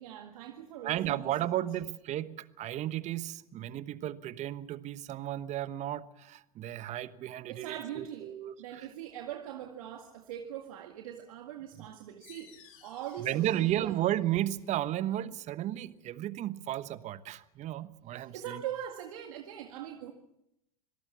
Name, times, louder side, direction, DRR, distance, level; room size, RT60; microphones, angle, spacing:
voice 1, 0.0-1.6 7.5-14.0 18.2-20.1, right 10 dB, 70° right, 4 dB, 2.0 m, -42 dB
voice 2, 0.8-8.9 13.2-18.6, right 13 dB, 40° right, 15 dB, 1.2 m, -34 dB
sound 1, 12.2-17.5, left 9 dB, 55° left, 4.9 m, -61 dB
26.0 x 18.5 x 7.1 m, 0.81 s
hypercardioid pair, 95°, 19 cm